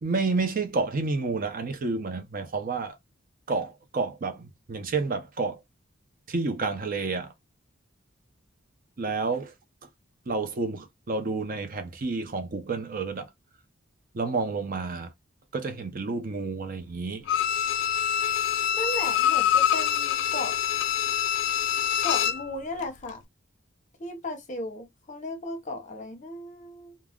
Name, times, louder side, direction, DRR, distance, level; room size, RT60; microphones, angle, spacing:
voice 1, 0.0-3.0 3.5-5.6 6.3-7.3 9.0-9.5 10.3-13.3 14.1-15.1 15.5-17.3, right 3 dB, 45° right, 0.5 m, -30 dB
Bowed string instrument, 17.3-22.5 22.8-22.9, left 9 dB, 65° left, 0.3 m, -25 dB
voice 2, 18.7-20.6 21.7-23.2 24.0-27.0, left 2 dB, 40° left, 0.7 m, -35 dB
2.3 x 2.0 x 3.4 m
head